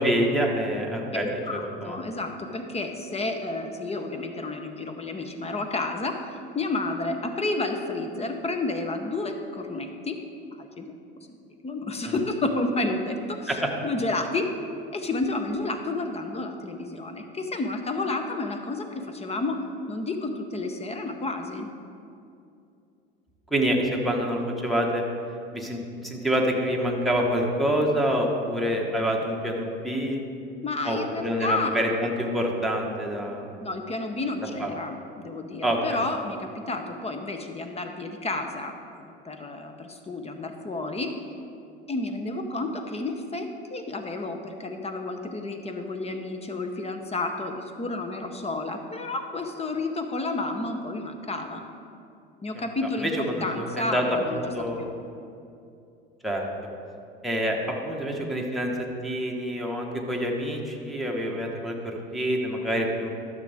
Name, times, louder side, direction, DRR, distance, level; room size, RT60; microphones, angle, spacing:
voice 1, 0.0-1.3 1.5-1.9 12.0-12.1 13.5-13.6 23.5-25.0 25.5-30.2 30.8-33.5 34.6-34.7 35.6-36.0 52.5-52.7 53.0-55.0 56.2-56.4 57.2-57.6 57.8-58.7 59.0-63.1, equal, ahead, -2 dB, 1.5 m, -27 dB
voice 2, 1.1-10.2 10.6-11.0 11.3-14.5 14.9-21.7 30.6-31.8 33.6-41.1 41.9-51.6 52.4-54.4 54.8-54.9, left 2 dB, 20° left, 6 dB, 0.9 m, -31 dB
12.5 x 6.6 x 3.6 m, 2.5 s
hypercardioid pair, 80°, 30 cm